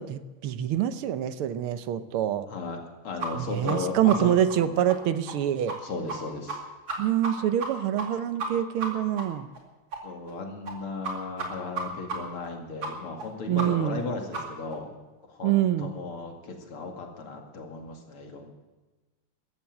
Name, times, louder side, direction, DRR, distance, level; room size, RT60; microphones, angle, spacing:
voice 1, 0.0-2.5 3.3-5.8 7.0-9.5 13.5-14.0 15.4-15.9, right 11 dB, 80° right, 12 dB, 1.7 m, -26 dB
voice 2, 3.0-4.8 5.8-6.6 10.0-14.9 15.3-15.5 15.8-18.5, left 3 dB, 80° left, 2 dB, 3.2 m, -35 dB
sound 1, 3.2-3.3 3.7-3.8 4.1-4.2 4.5-4.6 4.9-5.0 5.3-5.4 5.7-5.8 6.1-6.2 6.5-6.6 6.9-7.3 7.6-7.7 8.0-8.1 8.4-8.5 8.8-8.9 9.2-9.3 9.5-9.6 9.9-10.0 10.3-10.4 10.7-10.8 11.0-11.1 11.4-11.5 11.7-11.8 12.1-12.2 12.4-12.5 12.8-12.9 13.2-13.3 13.6-13.7 13.9-14.0 14.3-14.4 14.7-14.8, right 4 dB, 65° right, 3.2 m, -32 dB
14.5 x 13.0 x 7.7 m, 1.2 s
omnidirectional pair, 2.4 m